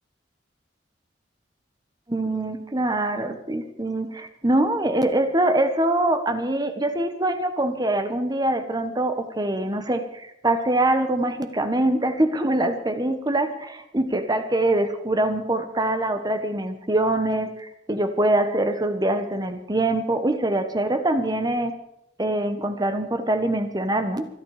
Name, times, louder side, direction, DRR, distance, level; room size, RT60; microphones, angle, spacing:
voice 1, 2.1-21.7 22.2-24.3, right 1 dB, 25° right, 8 dB, 1.3 m, -24 dB
25.5 x 8.9 x 5.0 m, 0.82 s
head